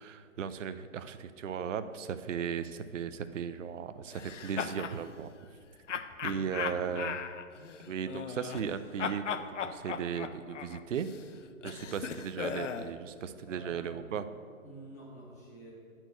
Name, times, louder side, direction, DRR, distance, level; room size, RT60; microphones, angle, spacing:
voice 1, 0.0-5.3 6.2-7.2 7.8-11.1 11.6-14.3, right 7 dB, 60° right, 11 dB, 0.5 m, -36 dB
sound 1, 4.1-5.0 5.9-8.7 9.0-12.9, left 7 dB, 60° left, 0.5 m, -38 dB
voice 2, 11.8-12.2 13.4-14.1 14.6-15.7, right 1 dB, 10° left, -4 dB, 0.8 m, -50 dB
8.0 x 4.5 x 6.2 m, 2.1 s
hypercardioid pair, 165°, 42 cm